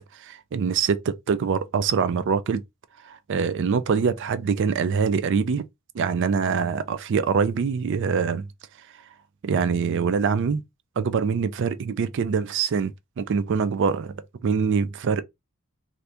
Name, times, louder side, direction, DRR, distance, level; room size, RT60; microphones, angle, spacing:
voice 1, 0.1-2.6 3.0-5.6 5.9-8.5 9.4-10.6 11.0-14.2 14.4-15.2, right 6 dB, 60° right, 0.4 m, -24 dB
2.8 x 2.5 x 3.4 m
head